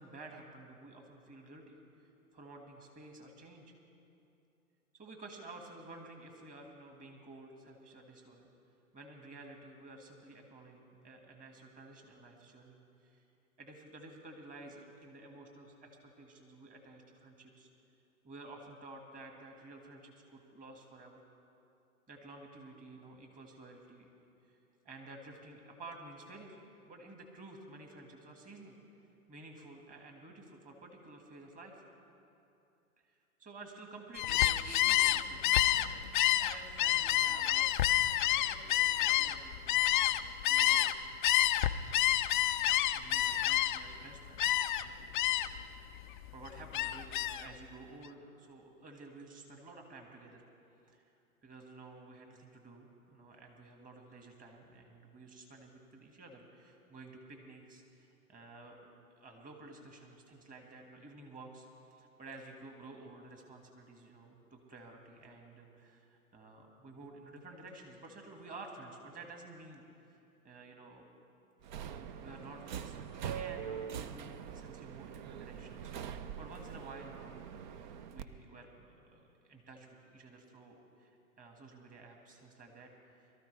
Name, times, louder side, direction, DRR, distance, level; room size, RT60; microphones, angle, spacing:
voice 1, 0.0-3.7 4.9-8.5 8.9-13.2 13.6-17.7 18.2-21.2 22.1-24.1 24.5-24.6 24.8-26.6 26.9-28.8 29.3-31.8 33.0-36.0 36.3-41.0 42.9-50.5 50.8-51.1 51.4-58.9 59.2-69.8 70.1-70.2 70.4-71.1 72.2-83.3, right 2 dB, 20° right, 2 dB, 2.0 m, -52 dB
Gull seagull, 34.1-40.9 41.2-43.9 44.4-44.8 45.1-45.6 46.0-47.5, left 13 dB, 35° left, 0.4 m, -28 dB
Subway metro underground, 71.6-78.2, right 8 dB, 35° right, 0.5 m, -43 dB
23.0 x 13.5 x 3.4 m, 2.7 s
hypercardioid pair, 120°, 44 cm